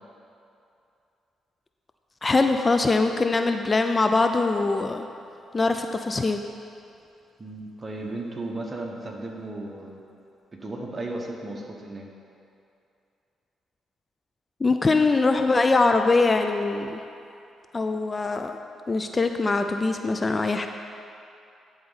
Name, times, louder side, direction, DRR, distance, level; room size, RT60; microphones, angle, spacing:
voice 1, 2.2-5.1 5.5-6.4 14.6-17.0 17.7-18.6 18.9-20.7, left 3 dB, 35° left, 6 dB, 0.4 m, -22 dB
voice 2, 7.4-10.0 10.6-12.1, right 2 dB, 35° right, 1 dB, 1.1 m, -35 dB
11.0 x 3.9 x 4.0 m, 2.6 s
supercardioid pair, 55°, 0 cm